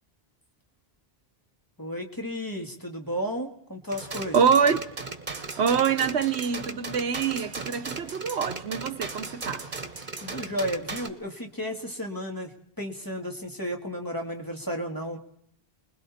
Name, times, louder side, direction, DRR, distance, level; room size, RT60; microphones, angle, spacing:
voice 1, 1.8-4.4 10.2-15.2, equal, 20° left, 2.3 m, -33 dB
sound 1, 3.9-11.1, right 3 dB, 45° right, 1.5 m, -37 dB
voice 2, 4.3-4.8 5.6-9.7, right 6 dB, 85° right, 1.3 m, -25 dB
29.0 x 21.0 x 4.3 m
omnidirectional pair, 1.1 m